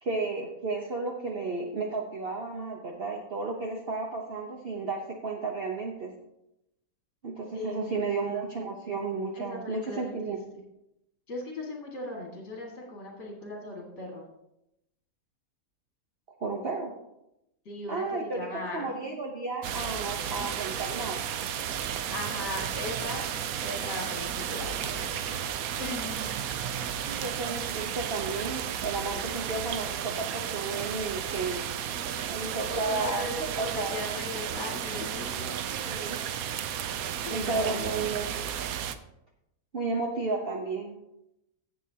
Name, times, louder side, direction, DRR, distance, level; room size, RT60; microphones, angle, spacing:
voice 1, 0.0-6.1 7.2-10.6 16.4-16.9 17.9-21.2 27.1-31.6 32.3-34.0 35.7-36.2 37.3-38.4 39.7-40.9, right 3 dB, 45° right, 1 dB, 1.0 m, -33 dB
voice 2, 7.5-7.9 9.4-10.4 11.3-14.2 17.7-19.0 22.1-23.2 23.6-25.3 25.8-26.3 32.7-35.6 35.8-35.9 37.2-37.7, left 2 dB, 50° left, -1 dB, 2.3 m, -38 dB
sound 1, 19.6-39.0, right 9 dB, 75° right, 1.1 m, -33 dB
15.5 x 7.0 x 2.8 m, 0.85 s
omnidirectional pair, 1.5 m